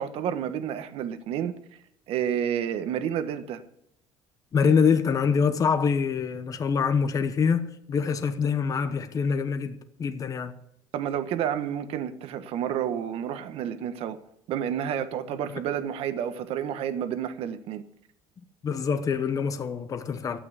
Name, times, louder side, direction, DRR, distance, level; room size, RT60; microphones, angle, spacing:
voice 1, 0.0-1.5 2.1-3.6 10.9-14.2 14.5-17.8, right 9 dB, 60° right, 1.2 m, -30 dB
voice 2, 4.5-10.6 18.6-20.4, left 6 dB, 30° left, 1.0 m, -25 dB
13.0 x 8.7 x 8.2 m
cardioid pair, 125°, 11 cm